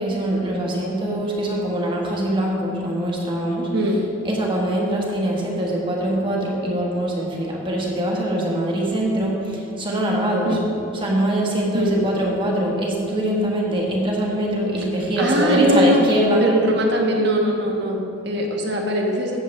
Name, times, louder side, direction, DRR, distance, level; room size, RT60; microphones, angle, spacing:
voice 1, 0.0-3.7 4.2-10.6 11.0-16.5, right 1 dB, 25° right, -2 dB, 1.3 m, -23 dB
voice 2, 15.2-16.1 16.4-19.4, equal, 55° right, 0 dB, 1.3 m, -21 dB
14.5 x 7.2 x 3.2 m, 2.7 s
head